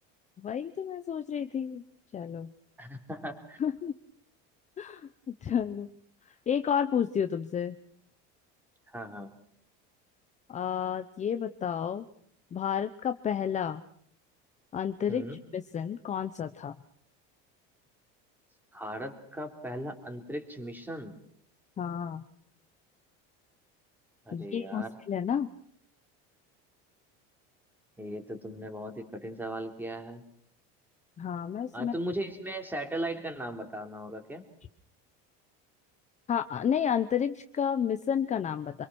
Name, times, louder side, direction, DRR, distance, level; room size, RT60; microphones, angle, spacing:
voice 1, 0.4-1.8 2.1-2.5 3.6-3.9 4.8-5.9 6.5-7.8 10.5-12.0 12.5-13.8 14.7-15.2 15.5-16.7 21.8-22.3 24.3-25.5 31.2-31.9 36.3-38.9, left 8 dB, 25° left, 9 dB, 0.9 m, -31 dB
voice 2, 2.8-3.6 8.9-9.3 15.1-15.4 18.7-21.1 24.3-24.9 28.0-30.2 31.7-34.4, right 1 dB, 5° right, 5 dB, 3.4 m, -37 dB
26.0 x 23.0 x 6.3 m, 0.64 s
cardioid pair, 150°, 30 cm